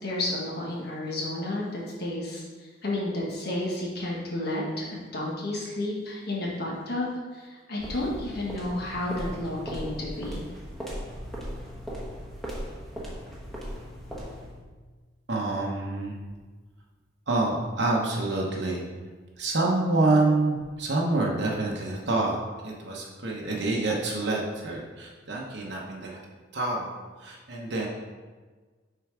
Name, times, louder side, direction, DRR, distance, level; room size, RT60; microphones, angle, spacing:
voice 1, 0.0-7.1 7.3-10.4, left 1 dB, 50° left, -4 dB, 1.2 m, -31 dB
sound 1, 7.8-14.6, equal, ahead, 1.1 m, -38 dB
voice 2, 15.3-16.2 17.3-18.8 19.4-22.4 22.6-26.2 26.5-26.9 27.2-27.9, right 2 dB, 60° right, -2 dB, 0.9 m, -27 dB
6.7 x 3.9 x 4.9 m, 1.4 s
head